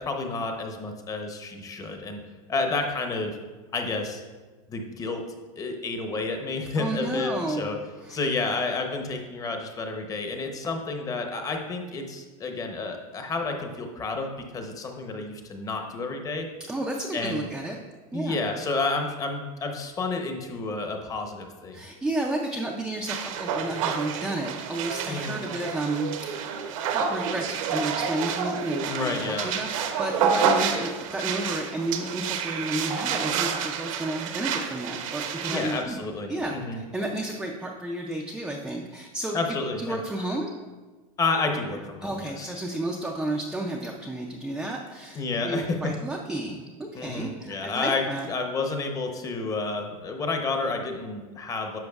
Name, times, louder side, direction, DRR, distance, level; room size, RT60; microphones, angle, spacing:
voice 1, 0.0-2.2 2.5-3.4 3.7-4.2 4.7-5.2 5.6-7.8 8.1-16.5 17.1-17.5 18.1-21.8 25.1-25.4 28.9-29.5 35.5-36.8 39.3-40.0 41.2-42.5 45.1-45.9 46.9-48.0 48.3-51.8, left 3 dB, 20° left, 4 dB, 0.8 m, -30 dB
voice 2, 6.8-7.7 8.0-8.2 16.6-17.8 18.1-18.4 21.7-26.6 26.9-36.0 36.3-39.4 39.8-40.5 42.0-48.3, right 2 dB, 5° right, -1 dB, 0.4 m, -32 dB
sound 1, 23.1-35.8, right 6 dB, 65° right, 0.8 m, -29 dB
10.5 x 6.1 x 2.3 m, 1.3 s
supercardioid pair, 145°, 18 cm